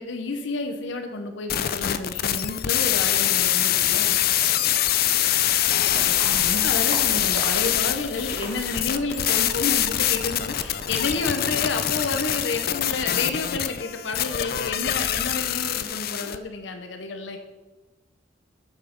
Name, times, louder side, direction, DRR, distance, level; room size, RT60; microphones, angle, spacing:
voice 1, 0.0-4.2 6.1-17.4, left 3 dB, 70° left, 6 dB, 0.8 m, -30 dB
sound 1, 1.5-16.4, left 12 dB, 50° left, 0.4 m, -24 dB
voice 2, 4.3-5.3, right 1 dB, 55° right, -2 dB, 3.0 m, -47 dB
Livestock farm animals working animals, 5.9-11.1, right 1 dB, 85° right, 1.8 m, -38 dB
8.1 x 7.2 x 5.1 m, 1.2 s
head